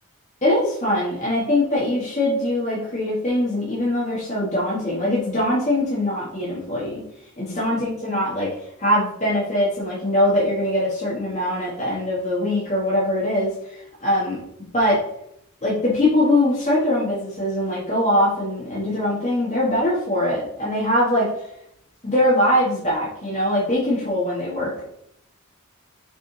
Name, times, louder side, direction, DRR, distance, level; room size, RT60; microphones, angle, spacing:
voice 1, 0.4-7.0 7.4-8.5 8.8-14.4 14.7-15.0 15.6-21.4 22.0-24.9, left 1 dB, 35° left, -8 dB, 1.8 m, -22 dB
6.7 x 3.8 x 4.1 m, 0.74 s
head